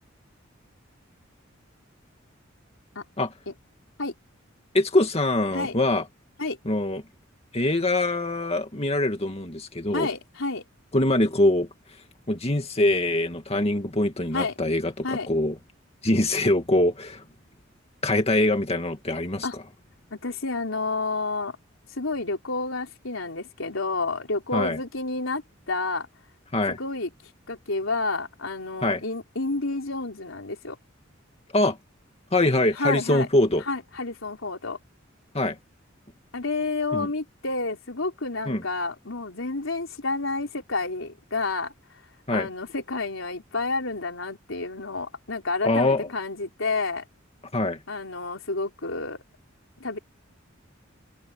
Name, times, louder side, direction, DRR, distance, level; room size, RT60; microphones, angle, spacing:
voice 1, 4.7-6.0 6.7-7.0 7.5-10.1 10.9-11.7 12.3-15.5 16.0-17.2 18.0-19.5 24.5-24.8 26.5-26.8 28.8-29.0 31.5-31.8 32.3-33.6 35.3-35.6 36.9-37.1 38.5-38.6 42.3-42.5 45.6-46.0 47.5-47.8, left 1 dB, 30° left, 2.2 m, -23 dB
voice 2, 9.9-10.6 14.3-14.6 15.0-15.3 19.4-19.6 20.1-21.6 21.9-26.1 26.7-30.8 32.7-33.3 33.7-34.8 36.3-41.7 42.3-47.1 47.9-49.2 49.8-50.0, left 3 dB, 85° left, 4.0 m, -30 dB
head